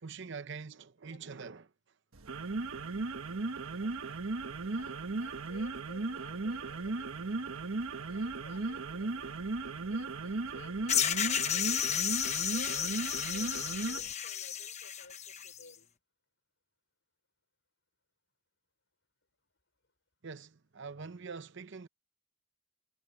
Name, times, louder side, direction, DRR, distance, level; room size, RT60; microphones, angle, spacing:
voice 1, 0.0-1.7 20.2-21.9, right 5 dB, 55° right, 0.8 m, -44 dB
sound 1, 2.1-14.1, right 3 dB, 80° right, 1.3 m, -36 dB
voice 2, 4.6-7.4 8.0-9.4 9.9-12.0 12.5-15.9, left 2 dB, 60° left, 5.9 m, -55 dB
sound 2, 10.9-15.6, left 9 dB, 30° left, 1.0 m, -32 dB
head